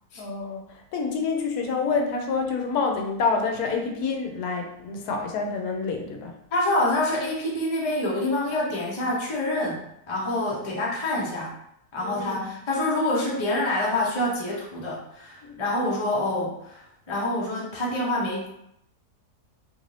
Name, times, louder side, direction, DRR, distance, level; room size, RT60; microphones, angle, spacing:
voice 1, 0.2-0.6 0.9-6.3 12.0-12.3 15.4-15.6, left 4 dB, 75° left, 3 dB, 1.1 m, -27 dB
voice 2, 6.5-11.5 11.9-18.5, left 1 dB, 30° left, -4 dB, 0.5 m, -26 dB
3.0 x 2.5 x 3.1 m, 0.78 s
omnidirectional pair, 1.7 m